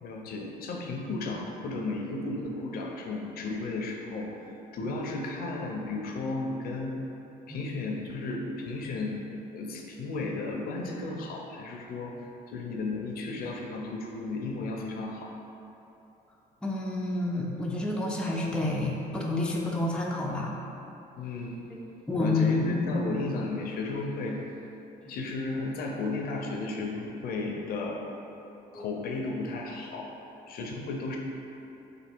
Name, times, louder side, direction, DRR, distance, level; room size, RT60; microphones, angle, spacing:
voice 1, 0.0-4.3 4.7-7.0 7.5-12.1 12.5-15.3 21.2-21.6 22.1-24.4 25.1-28.0 28.7-30.1 30.5-31.2, left 3 dB, 60° left, 0 dB, 0.5 m, -34 dB
voice 2, 16.6-20.5 21.7-21.8 22.1-23.1 25.1-25.2 28.7-28.8, left 2 dB, 5° left, -3 dB, 0.4 m, -29 dB
3.4 x 2.6 x 4.3 m, 2.9 s
cardioid pair, 110°, 17 cm